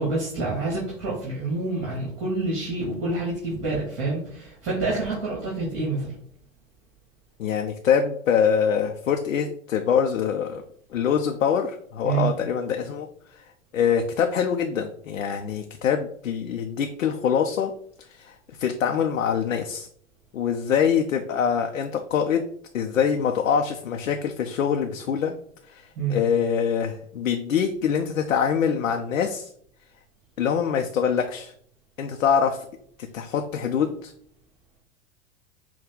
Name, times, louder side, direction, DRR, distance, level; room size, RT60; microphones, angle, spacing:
voice 1, 0.0-6.1 12.0-12.3 25.9-26.2, right 3 dB, 35° right, -5 dB, 2.0 m, -27 dB
voice 2, 7.4-10.6 10.9-13.1 13.4-13.5 13.7-17.7 18.1-19.9 20.3-22.4 22.7-25.3 25.7-29.5 30.4-31.5 32.0-32.6 33.1-34.1, left 7 dB, 80° left, 4 dB, 0.6 m, -24 dB
6.0 x 2.3 x 3.7 m, 0.65 s
figure-of-eight pair, 95°, 40 cm